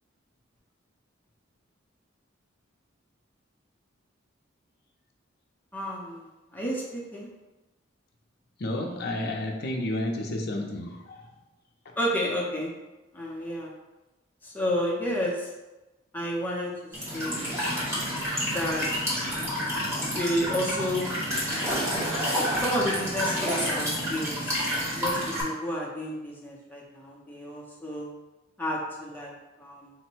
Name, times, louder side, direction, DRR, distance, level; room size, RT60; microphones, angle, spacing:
voice 1, 5.7-7.3 12.0-12.7 13.1-13.7 14.4-15.5 16.1-17.5 18.5-19.1 19.8-19.9 20.1-21.1 21.5-21.9 22.6-24.5 24.9-28.1 28.6-29.3 29.6-29.9, equal, 10° left, -4 dB, 0.6 m, -31 dB
voice 2, 8.6-11.3 11.8-11.9, left 1 dB, 50° left, 1 dB, 0.5 m, -31 dB
Walk footsteps / Chirp tweet / Stream, 16.9-25.4, equal, 15° right, 1.1 m, -29 dB
3.9 x 2.1 x 4.4 m, 1.1 s
head